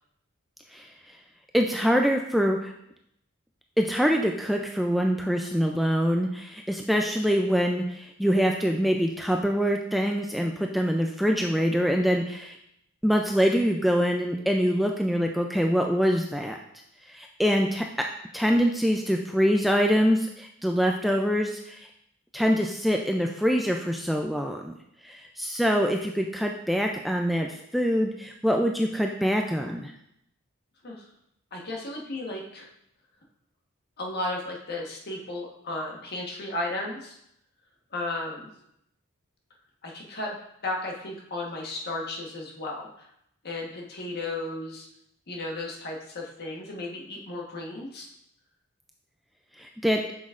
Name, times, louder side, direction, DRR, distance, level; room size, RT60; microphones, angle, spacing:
voice 1, 1.5-2.7 3.8-12.6 13.0-16.6 17.1-18.1 18.3-21.9 22.3-24.7 25.0-29.9 49.6-50.0, equal, ahead, 2 dB, 0.3 m, -24 dB
voice 2, 31.5-32.7 34.0-37.2 37.9-38.5 39.8-40.4 40.6-43.1 43.4-44.9 45.3-48.1, left 2 dB, 50° left, -1 dB, 1.3 m, -34 dB
7.8 x 6.2 x 2.5 m, 0.77 s
head